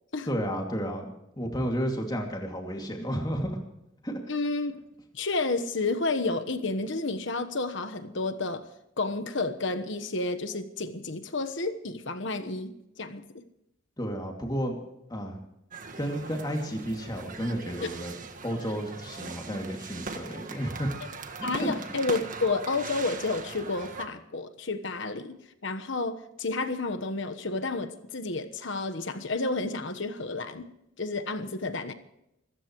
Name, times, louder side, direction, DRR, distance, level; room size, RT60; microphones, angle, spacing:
voice 1, 0.3-3.6 4.0-4.2 14.0-14.8 15.1-15.4 16.0-18.1 18.4-21.0 21.4-21.7, equal, 20° left, 1 dB, 2.6 m, -32 dB
voice 2, 4.3-4.7 5.1-8.6 9.0-13.2 17.8-17.9 21.4-25.4 25.6-30.7 31.0-31.9, left 3 dB, 65° left, 9 dB, 1.3 m, -31 dB
sound 1, 15.7-24.1, right 4 dB, 40° right, 1.6 m, -40 dB
25.0 x 14.5 x 3.2 m, 0.84 s
head